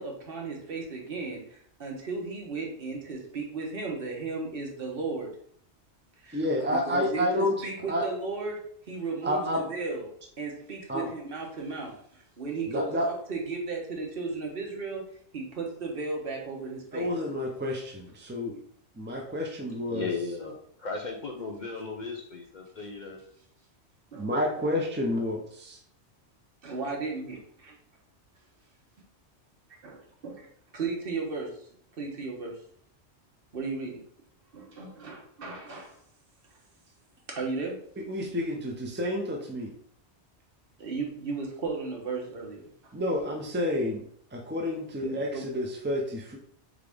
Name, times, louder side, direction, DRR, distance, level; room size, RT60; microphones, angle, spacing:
voice 1, 0.0-1.4 1.8-5.3 6.2-8.6 8.9-10.1 10.4-11.9 12.4-15.0 15.3-17.3 24.1-24.3 26.6-27.7 29.8-30.0 30.2-30.4 30.7-31.5 32.0-32.5 33.5-34.0 34.5-35.9 37.4-37.8 40.8-42.7 45.0-45.5, right 4 dB, 55° right, 0 dB, 1.1 m, -35 dB
voice 2, 6.3-7.5 7.9-8.0 9.2-9.7 10.9-11.1 12.7-13.1 16.9-18.6 19.0-20.1 24.2-25.8 38.0-39.7 42.9-44.0 44.3-46.4, left 1 dB, 15° right, 0 dB, 0.3 m, -29 dB
voice 3, 19.9-23.2, left 4 dB, 50° left, 1 dB, 0.6 m, -36 dB
3.8 x 3.7 x 3.4 m, 0.64 s
omnidirectional pair, 1.2 m